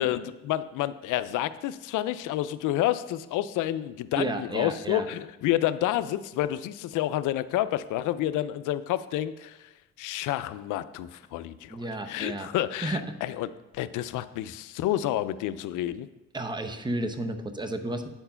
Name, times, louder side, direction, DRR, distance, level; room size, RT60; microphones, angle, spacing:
voice 1, 0.0-9.6 10.0-11.8 12.1-13.5 13.7-16.1, left 13 dB, 85° left, 14 dB, 0.5 m, -29 dB
voice 2, 4.2-5.1 11.7-12.5 12.8-13.2 16.3-18.1, right 1 dB, 15° right, 7 dB, 0.8 m, -32 dB
8.7 x 4.5 x 5.6 m, 1.0 s
cardioid pair, 90°, 30 cm